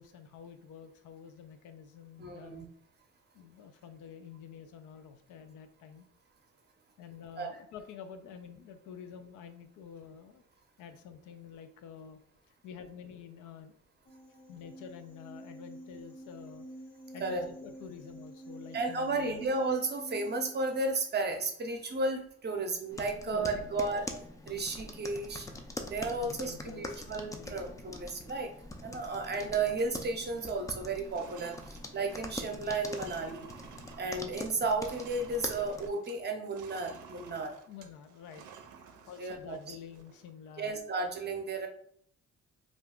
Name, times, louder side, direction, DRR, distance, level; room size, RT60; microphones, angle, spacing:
voice 1, 0.0-2.6 3.3-6.1 7.0-10.4 10.8-12.2 12.5-13.7 14.5-16.7 17.1-19.4 23.3-23.9 26.2-27.1 27.4-27.8 37.7-38.7 39.1-40.8, left 7 dB, 80° left, 8 dB, 0.5 m, -48 dB
voice 2, 2.2-2.7 7.4-7.6 17.2-17.4 18.7-24.1 24.5-25.5 25.8-28.5 28.8-33.5 34.0-37.6 39.2-39.8 40.6-41.7, right 3 dB, 35° right, 4 dB, 0.6 m, -33 dB
sound 1, 14.1-20.8, right 1 dB, 40° left, 0.7 m, -48 dB
sound 2, 22.9-35.9, left 2 dB, 10° left, 0.3 m, -44 dB
sound 3, 25.2-26.3 26.8-26.9 27.1-27.5 27.9-28.1 28.4-29.5 29.7-30.0 30.2-36.2 36.5-40.3, right 6 dB, 80° right, 0.5 m, -53 dB
2.4 x 2.2 x 3.5 m, 0.64 s
cardioid pair, 90°, 30 cm